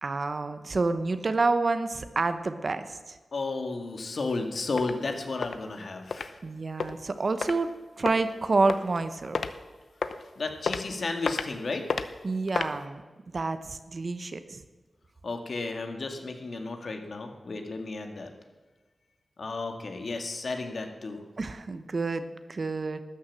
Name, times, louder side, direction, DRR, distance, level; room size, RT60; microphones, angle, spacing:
voice 1, 0.0-3.2 6.4-9.4 12.2-13.0 13.3-14.6 21.4-23.0, right 3 dB, 55° right, 10 dB, 1.0 m, -28 dB
voice 2, 3.3-6.3 10.4-11.8 15.2-18.3 19.4-21.2, left 3 dB, 70° left, 4 dB, 1.8 m, -33 dB
sound 1, 4.3-4.4 4.8-4.9 5.4-5.6 6.1-6.3 6.8-6.9 7.4-7.5 8.1-8.3 8.7-9.0 9.3-9.5 10.0-10.2 10.7-10.8 11.3-11.5 11.9-12.0 12.5-12.7, left 5 dB, 85° left, 0.7 m, -30 dB
12.5 x 9.5 x 7.5 m, 1.3 s
wide cardioid pair, 75°, 0 cm